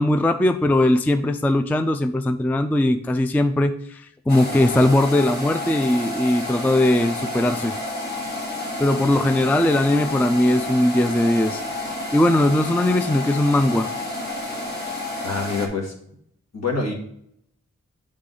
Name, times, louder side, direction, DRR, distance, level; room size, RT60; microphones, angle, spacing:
voice 1, 0.0-7.8 8.8-11.6 12.1-13.9, left 1 dB, 5° left, 9 dB, 0.3 m, -19 dB
sound 1, 4.3-15.7, left 2 dB, 35° left, 1.4 m, -30 dB
voice 2, 15.2-15.9 16.5-16.9, left 4 dB, 60° left, 0 dB, 1.7 m, -25 dB
7.8 x 3.7 x 3.8 m, 0.70 s
wide cardioid pair, 65°, 30 cm